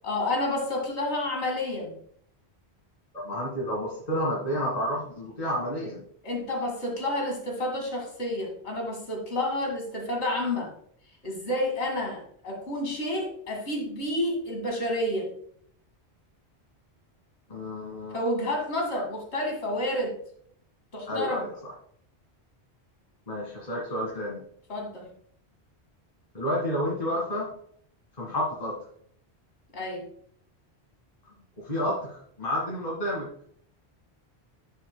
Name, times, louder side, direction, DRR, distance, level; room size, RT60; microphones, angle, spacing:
voice 1, 0.0-1.9 6.2-10.7 11.2-15.3 18.1-20.2 20.9-21.5 24.7-25.1 29.7-30.1, left 1 dB, 80° left, 1 dB, 2.3 m, -30 dB
voice 2, 3.1-6.0 17.5-18.2 21.1-21.5 23.3-24.4 26.3-27.5 28.2-28.8 31.6-33.3, equal, 40° left, -5 dB, 1.9 m, -30 dB
10.0 x 7.5 x 2.2 m, 0.64 s
omnidirectional pair, 1.1 m